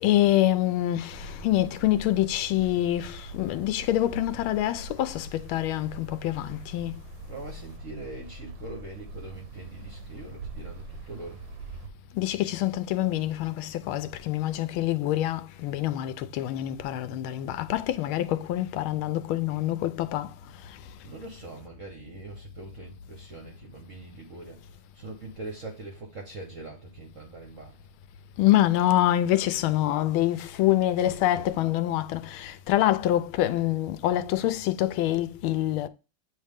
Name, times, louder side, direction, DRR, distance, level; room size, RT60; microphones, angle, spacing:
voice 1, 0.0-7.0 12.1-20.3 20.6-20.8 28.4-35.9, left 13 dB, 80° left, 1.4 m, -26 dB
sound 1, 1.1-11.9, right 2 dB, 75° right, 1.2 m, -43 dB
voice 2, 7.3-11.4 21.0-27.8, right 3 dB, 55° right, 0.9 m, -42 dB
8.7 x 3.2 x 3.4 m
omnidirectional pair, 2.3 m